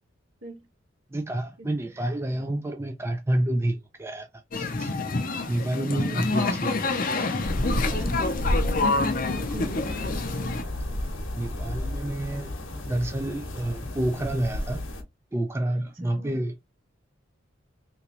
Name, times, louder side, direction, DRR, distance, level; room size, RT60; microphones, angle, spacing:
voice 1, 1.1-4.3 4.5-4.9 5.5-7.0 11.4-14.8 15.3-16.5, right 1 dB, 10° right, 0.3 m, -29 dB
sound 1, 4.5-10.6, left 3 dB, 40° left, 0.6 m, -27 dB
sound 2, 7.4-15.0, left 1 dB, 70° left, 1.0 m, -31 dB
voice 2, 7.7-10.2 15.7-16.4, right 1 dB, 75° right, 1.3 m, -41 dB
3.4 x 3.0 x 2.9 m
head